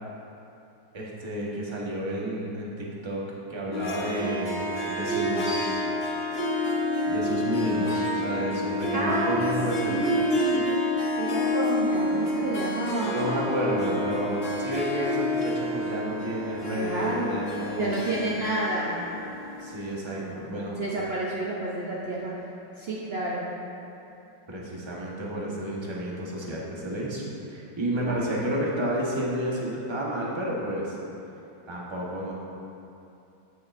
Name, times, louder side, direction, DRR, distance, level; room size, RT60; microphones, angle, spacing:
voice 1, 0.9-3.2 3.5-5.9 7.0-10.0 13.0-17.9 19.6-20.8 24.5-31.0 31.7-32.3, right 1 dB, 20° right, -5 dB, 0.8 m, -31 dB
Harp, 3.7-20.2, left 1 dB, 55° left, 0.7 m, -29 dB
voice 2, 8.9-9.5 9.9-10.6 11.2-13.2 16.7-17.3 17.8-19.0 20.1-22.3 22.8-23.5 28.1-28.3, right 2 dB, 65° right, -5 dB, 0.6 m, -29 dB
9.5 x 8.7 x 2.5 m, 2.8 s
omnidirectional pair, 2.1 m